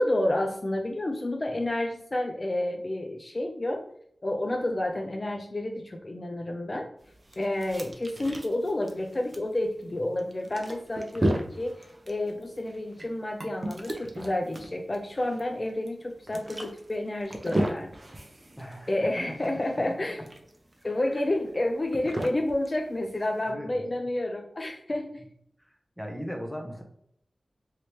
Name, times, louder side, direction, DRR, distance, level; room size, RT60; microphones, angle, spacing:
voice 1, 0.0-3.9 4.2-6.9 7.4-17.9 18.9-20.2 20.8-25.2, left 1 dB, 40° left, 3 dB, 0.4 m, -30 dB
sound 1, 7.0-23.5, right 1 dB, 35° right, 0.6 m, -35 dB
voice 2, 18.6-19.5 20.8-21.1 22.2-22.3 23.5-24.1 26.0-26.8, equal, ahead, 2 dB, 0.8 m, -39 dB
3.2 x 2.7 x 3.0 m, 0.68 s
wide cardioid pair, 55°, 0 cm